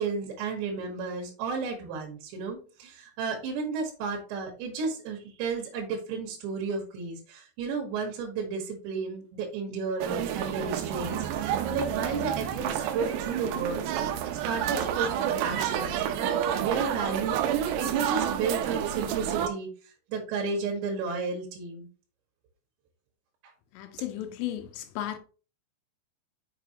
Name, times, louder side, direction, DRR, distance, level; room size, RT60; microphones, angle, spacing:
voice 1, 0.0-14.2 14.4-19.7 20.1-21.9, right 4 dB, 70° right, 3.7 m, -33 dB
sound 1, 10.0-19.5, right 10 dB, 90° right, 2.4 m, -29 dB
voice 2, 23.7-25.2, left 12 dB, 85° left, 3.4 m, -34 dB
7.0 x 6.6 x 2.9 m
omnidirectional pair, 5.6 m